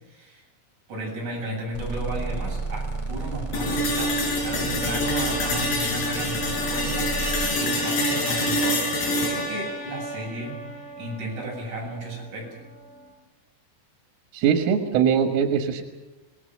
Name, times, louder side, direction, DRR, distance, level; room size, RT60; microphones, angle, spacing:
voice 1, 0.1-0.4 0.9-8.9 9.1-12.5, right 1 dB, 35° right, -1 dB, 8.9 m, -34 dB
sound 1, 1.7-7.5, right 3 dB, 20° left, 0.7 m, -33 dB
sound 2, 3.5-11.5, left 1 dB, 50° left, 7.5 m, -26 dB
voice 2, 14.3-15.8, right 7 dB, 90° right, 5 dB, 4.1 m, -21 dB
26.0 x 20.0 x 6.5 m, 1.1 s
omnidirectional pair, 5.6 m